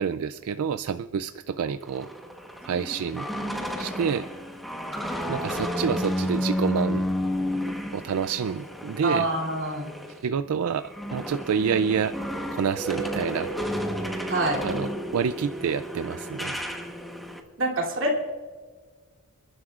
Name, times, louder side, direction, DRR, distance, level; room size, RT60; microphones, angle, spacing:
voice 1, 0.0-2.1 2.6-3.3 3.8-4.3 5.3-7.0 7.9-9.3 10.1-12.1 12.5-13.5 14.6-16.6, right 6 dB, 85° right, 12 dB, 0.4 m, -28 dB
sound 1, 1.8-10.2 10.5-17.4, equal, ahead, 1.1 m, -32 dB
voice 2, 9.0-9.9 14.3-14.6 17.6-18.3, right 1 dB, 60° right, -1 dB, 2.9 m, -26 dB
28.5 x 11.5 x 2.5 m, 1.5 s
head